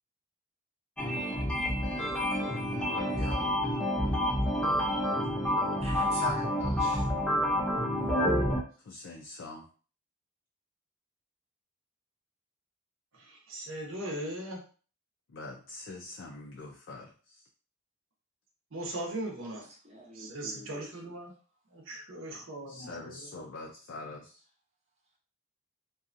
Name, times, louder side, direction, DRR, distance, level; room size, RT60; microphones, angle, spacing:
sound 1, 1.0-8.6, equal, 5° left, 0.4 m, -29 dB
voice 1, 2.9-3.5 8.8-9.6 15.3-17.4 22.7-24.4, left 2 dB, 65° left, 0.4 m, -44 dB
voice 2, 5.7-7.1 19.5-21.1, right 1 dB, 30° right, 0.7 m, -43 dB
voice 3, 13.2-14.6 18.7-19.6 20.1-21.3 21.7-23.4, right 1 dB, 75° right, 0.8 m, -39 dB
2.6 x 2.3 x 2.5 m
head